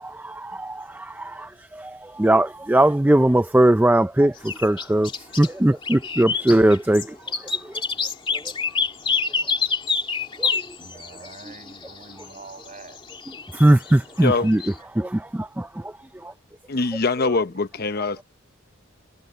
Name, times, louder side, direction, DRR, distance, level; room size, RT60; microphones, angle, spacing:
voice 1, 0.0-5.1 5.4-7.1 10.4-10.5 13.5-14.6 15.0-15.7 16.2-16.3, right 1 dB, 10° right, 0.4 m, -20 dB
sound 1, 4.4-5.5 5.8-14.7, left 5 dB, 25° left, 2.5 m, -27 dB
voice 2, 10.8-13.0, right 3 dB, 35° right, 6.3 m, -44 dB
voice 3, 14.2-14.5 16.7-18.2, left 3 dB, 50° left, 0.8 m, -23 dB
head